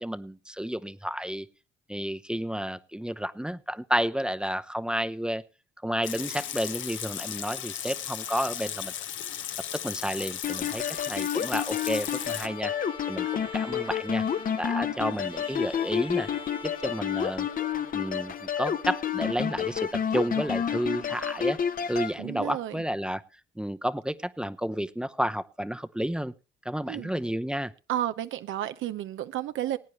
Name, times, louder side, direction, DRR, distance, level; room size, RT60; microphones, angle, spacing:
voice 1, 0.0-1.5 1.9-5.4 5.8-8.9 9.7-12.7 13.1-14.2 14.6-16.3 16.6-17.5 17.9-21.6 21.9-23.2 23.6-26.3 26.6-27.7, equal, 5° right, 12 dB, 0.7 m, -31 dB
Water tap faucet / Sink (filling or washing) / Liquid, 6.0-12.5, left 10 dB, 75° left, 1.0 m, -36 dB
sound 1, 10.4-22.1, left 8 dB, 45° left, 0.9 m, -30 dB
Bowed string instrument, 12.2-18.5, left 5 dB, 25° left, 1.2 m, -44 dB
voice 2, 22.2-22.8 26.9-27.1 27.9-29.8, right 12 dB, 80° right, 11 dB, 0.7 m, -32 dB
20.5 x 9.3 x 3.1 m, 0.31 s
cardioid pair, 90°, 20 cm